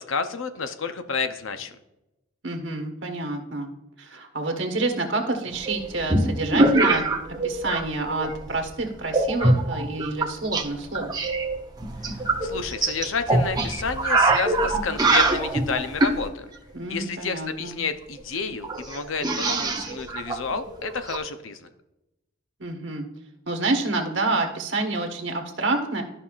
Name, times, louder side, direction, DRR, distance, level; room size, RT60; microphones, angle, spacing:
voice 1, 0.0-1.7 12.4-16.5 16.9-21.7, left 5 dB, 90° left, 9 dB, 0.7 m, -30 dB
voice 2, 2.4-3.7 4.0-7.0 7.3-11.2 16.7-17.8 22.6-23.0 23.5-26.0, right 2 dB, 65° right, 3 dB, 1.3 m, -28 dB
sound 1, 5.6-7.8 8.1-8.6 9.1-10.6 10.9-16.2 17.9-18.0 18.2-18.3 18.6-21.2, right 2 dB, 20° right, 0.8 m, -23 dB
13.0 x 5.6 x 2.4 m, 0.93 s
head